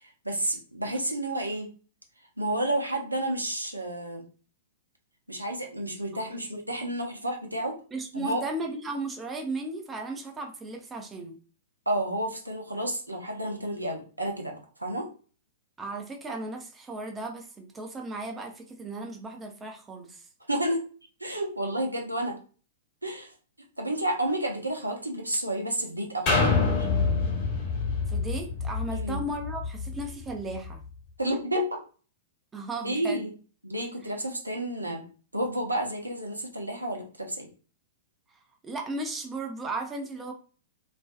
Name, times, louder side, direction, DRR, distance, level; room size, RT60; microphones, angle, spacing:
voice 1, 0.0-1.7 2.4-4.2 5.3-7.8 8.1-8.4 11.9-15.1 20.5-20.8 21.2-22.4 23.0-23.3 23.8-26.5 28.9-29.2 31.2-31.8 32.8-33.3 33.6-35.1 35.3-37.5, right 1 dB, 90° right, 2 dB, 0.6 m, -30 dB
voice 2, 7.9-11.4 15.8-20.2 28.1-30.8 32.5-33.3 38.6-40.3, right 2 dB, 15° right, 3 dB, 0.5 m, -35 dB
sound 1, 26.3-30.0 30.6-30.7, left 4 dB, 40° left, 1.2 m, -26 dB
2.5 x 2.3 x 2.3 m, 0.38 s
figure-of-eight pair, 105°, 0 cm